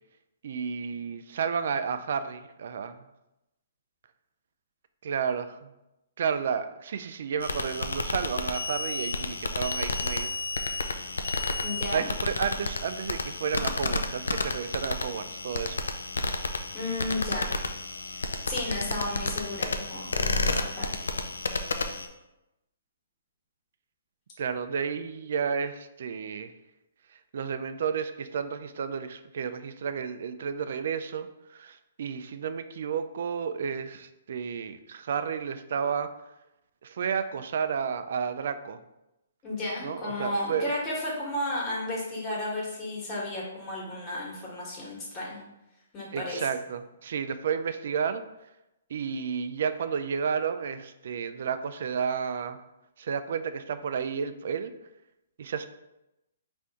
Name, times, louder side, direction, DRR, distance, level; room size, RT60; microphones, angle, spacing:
voice 1, 0.4-3.0 5.0-5.7 6.2-10.3 10.6-10.7 11.9-15.8 24.4-26.5 27.3-36.1 36.8-38.8 39.8-40.7 46.1-48.2 48.9-52.6 53.0-54.7 55.4-55.7, right 6 dB, 60° right, 11 dB, 0.3 m, -31 dB
sound 1, 7.4-22.1, left 3 dB, 90° left, 0.4 m, -31 dB
voice 2, 11.6-12.0 16.7-17.5 18.1-20.9 39.4-45.4 45.9-46.5, left 1 dB, 25° left, -4 dB, 1.3 m, -33 dB
4.3 x 2.6 x 3.5 m, 0.93 s
hypercardioid pair, 150°, 0 cm